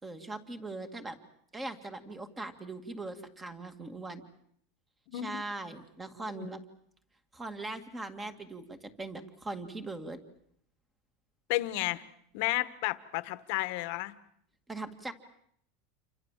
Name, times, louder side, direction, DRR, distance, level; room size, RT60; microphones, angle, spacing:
voice 1, 0.0-1.2 1.5-4.2 5.1-6.6 7.3-10.2 14.7-15.1, right 2 dB, 10° right, 9 dB, 2.1 m, -40 dB
voice 2, 5.1-5.4 6.3-6.5 11.5-12.0 12.3-14.1, left 19 dB, 55° left, 14 dB, 1.4 m, -32 dB
28.5 x 25.0 x 7.4 m, 0.68 s
supercardioid pair, 155°, 0 cm